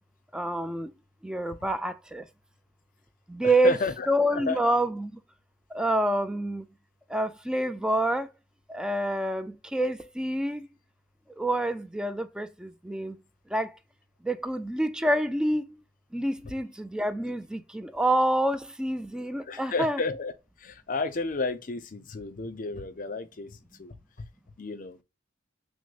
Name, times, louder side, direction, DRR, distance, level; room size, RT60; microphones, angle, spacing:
voice 1, 0.3-0.9 1.2-2.2 3.3-3.8 4.1-5.1 5.7-6.7 7.1-8.3 8.7-10.7 11.4-13.2 13.5-13.7 14.2-15.6 16.1-20.0, right 1 dB, 5° right, 0.3 m, -27 dB
voice 2, 3.4-4.6 19.5-20.3 20.6-24.3 24.6-25.0, left 4 dB, 45° left, 0.5 m, -32 dB
6.1 x 2.1 x 2.3 m
head